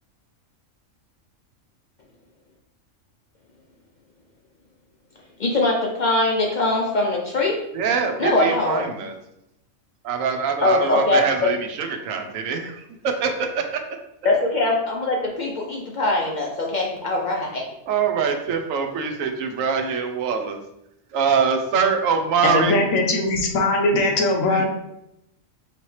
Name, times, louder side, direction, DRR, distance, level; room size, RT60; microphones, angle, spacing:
voice 1, 5.4-7.6 8.2-8.8 10.6-11.5 14.2-17.6, left 2 dB, 60° left, -1 dB, 0.5 m, -22 dB
voice 2, 7.7-9.1 10.0-13.8 17.9-20.6 21.1-22.8 24.5-24.7, right 6 dB, 85° right, 5 dB, 1.0 m, -24 dB
voice 3, 22.4-24.7, left 2 dB, 85° left, 2 dB, 1.2 m, -20 dB
4.7 x 2.9 x 3.1 m, 0.83 s
omnidirectional pair, 1.3 m